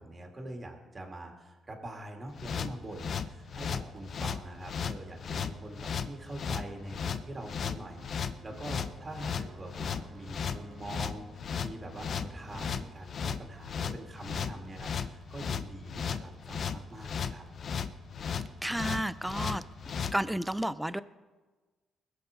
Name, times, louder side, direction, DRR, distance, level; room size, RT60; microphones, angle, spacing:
voice 1, 0.0-17.4, right 1 dB, 30° right, 2 dB, 2.5 m, -44 dB
sound 1, 2.3-20.2, left 7 dB, 55° left, 0.7 m, -35 dB
sound 2, 5.0-13.0, right 3 dB, 50° right, 1.8 m, -55 dB
voice 2, 18.6-19.6 20.1-21.0, right 1 dB, 5° right, 15 dB, 0.5 m, -31 dB
21.0 x 7.1 x 5.2 m, 1.3 s
cardioid pair, 90°, 0 cm